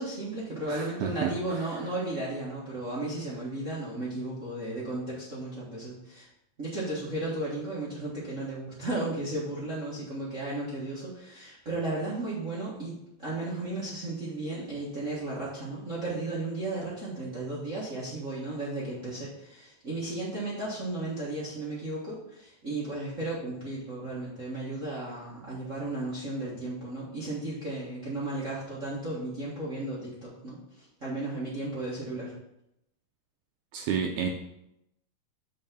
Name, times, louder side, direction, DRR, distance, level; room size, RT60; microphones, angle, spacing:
voice 1, 0.0-6.3 6.6-32.3, right 2 dB, 45° right, -7 dB, 0.9 m, -34 dB
voice 2, 0.7-1.3 33.7-34.3, right 7 dB, 80° right, 3 dB, 1.8 m, -30 dB
5.7 x 4.7 x 6.0 m, 0.83 s
omnidirectional pair, 3.9 m